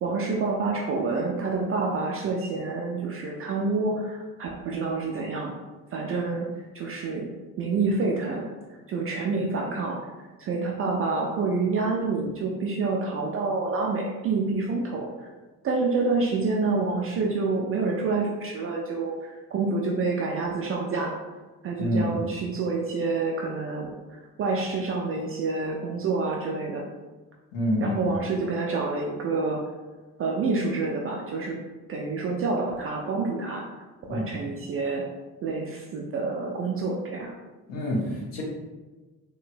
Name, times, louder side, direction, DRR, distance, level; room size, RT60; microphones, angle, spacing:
voice 1, 0.0-5.5 5.9-6.5 6.7-7.3 7.6-8.5 8.9-10.0 10.4-15.3 15.6-21.1 21.6-23.9 24.4-26.8 27.8-29.6 30.2-31.6 31.9-33.6 34.1-35.0 35.4-37.3, right 3 dB, 30° right, -1 dB, 0.3 m, -27 dB
voice 2, 21.8-22.2 27.5-28.1 34.1-34.3 37.7-38.0 38.3-38.4, left 1 dB, 55° left, -3 dB, 1.0 m, -26 dB
3.2 x 2.7 x 2.5 m, 1.2 s
figure-of-eight pair, 45°, 50 cm